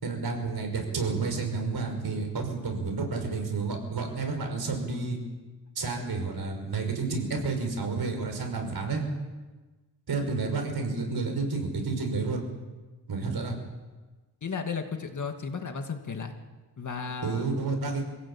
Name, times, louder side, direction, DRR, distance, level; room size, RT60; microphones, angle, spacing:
voice 1, 0.0-5.2 5.8-9.0 10.1-12.4 13.1-13.6 17.2-18.0, right 4 dB, 60° right, 4 dB, 5.8 m, -30 dB
voice 2, 14.4-16.4 16.8-17.5, left 5 dB, 45° left, 5 dB, 2.3 m, -34 dB
27.0 x 17.0 x 8.8 m, 1.3 s
wide cardioid pair, 140°, 41 cm